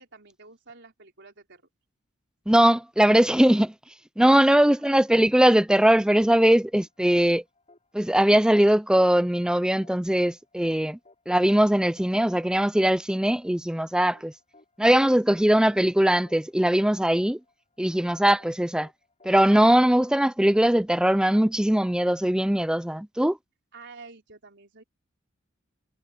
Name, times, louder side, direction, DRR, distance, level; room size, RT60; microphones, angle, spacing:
voice 1, 0.0-1.6 23.7-24.8, right 4 dB, 60° right, 4.4 m, -48 dB
voice 2, 2.5-3.7 4.2-7.4 7.9-11.0 11.3-14.3 14.8-17.4 17.8-18.9 19.2-23.4, right 1 dB, 5° right, 0.5 m, -20 dB
sound 1, 5.5-22.4, left 2 dB, 35° left, 5.8 m, -59 dB
head